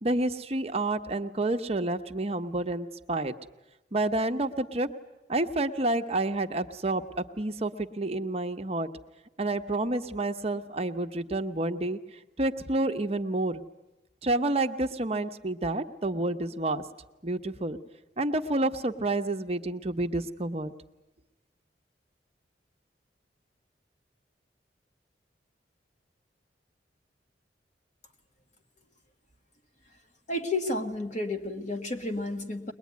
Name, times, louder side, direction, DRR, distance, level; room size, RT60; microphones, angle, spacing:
voice 1, 0.0-3.3 3.9-4.9 5.3-8.9 9.4-12.0 12.4-13.6 14.2-16.8 17.2-17.8 18.2-20.7, right 2 dB, 35° right, 6 dB, 0.9 m, -29 dB
voice 2, 30.3-32.7, left 2 dB, 45° left, 4 dB, 1.7 m, -31 dB
22.5 x 20.5 x 9.4 m, 0.99 s
head